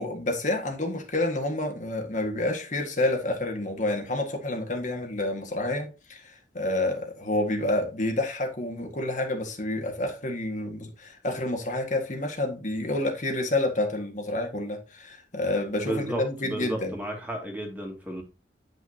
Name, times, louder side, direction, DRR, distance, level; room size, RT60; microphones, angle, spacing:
voice 1, 0.0-17.0, left 2 dB, 45° left, 1.8 m, -29 dB
voice 2, 15.8-18.2, right 1 dB, 10° right, 2.4 m, -33 dB
9.8 x 6.3 x 2.8 m
head